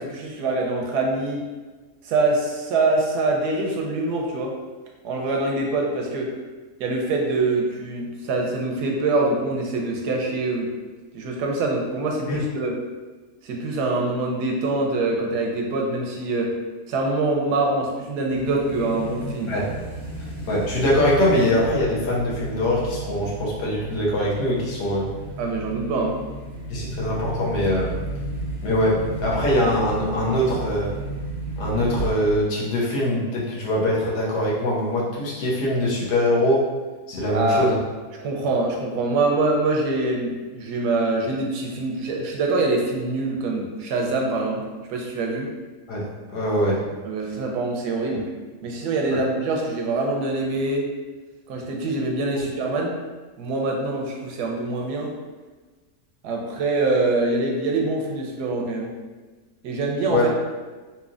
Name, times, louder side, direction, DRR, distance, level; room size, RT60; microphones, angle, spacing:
voice 1, 0.0-1.5 2.0-4.6 5.0-6.4 6.8-10.7 11.1-12.8 13.4-16.6 16.9-19.6 25.4-26.2 37.2-37.8 38.2-44.6 44.9-45.5 47.0-48.3 48.6-50.9 51.5-52.9 53.4-55.1 56.2-59.0 59.6-60.3, right 2 dB, 80° right, 0 dB, 1.2 m, -24 dB
sound 1, 18.3-32.5, right 1 dB, 25° left, 1.5 m, -33 dB
voice 2, 20.5-25.1 26.7-27.9 28.6-30.9 31.6-36.7 37.1-37.8 45.9-46.9 49.1-49.2 60.1-60.3, left 1 dB, 85° left, -4 dB, 1.5 m, -22 dB
4.2 x 2.7 x 2.4 m, 1.3 s
omnidirectional pair, 1.7 m